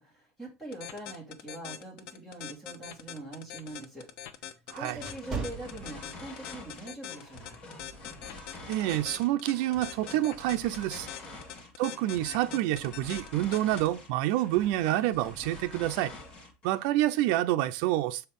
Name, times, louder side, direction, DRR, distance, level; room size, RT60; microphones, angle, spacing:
voice 1, 0.0-4.1 4.7-7.6 11.3-11.6, right 2 dB, 5° left, 3.1 m, -43 dB
sound 1, 0.7-13.9, left 11 dB, 75° left, 0.9 m, -42 dB
sound 2, 2.8-6.5 6.9-7.2 7.8-8.1, right 4 dB, 10° right, 2.0 m, -40 dB
sound 3, 4.7-16.9, left 2 dB, 30° left, 2.1 m, -47 dB
voice 2, 8.7-11.1 11.8-16.1 16.6-18.3, right 14 dB, 70° right, 0.5 m, -28 dB
6.5 x 4.5 x 5.3 m
cardioid pair, 165°, 3 cm